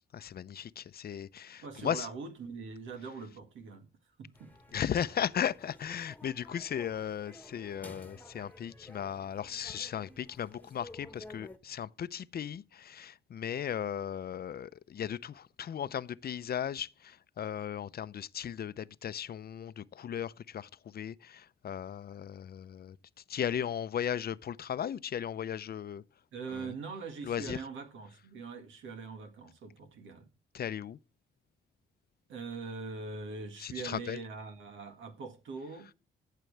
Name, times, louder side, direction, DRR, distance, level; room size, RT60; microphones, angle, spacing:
voice 1, 0.1-2.1 4.7-23.0 23.3-26.0 26.5-26.7 27.2-27.6 30.5-31.0 33.6-34.2, left 9 dB, 55° left, 0.6 m, -36 dB
voice 2, 1.6-3.9 4.2-4.5 26.3-30.3 32.3-35.9, right 4 dB, 85° right, 2.0 m, -42 dB
sound 1, 4.3-11.6, left 1 dB, 10° left, 1.5 m, -53 dB
14.0 x 7.5 x 3.4 m
cardioid pair, 70°, 19 cm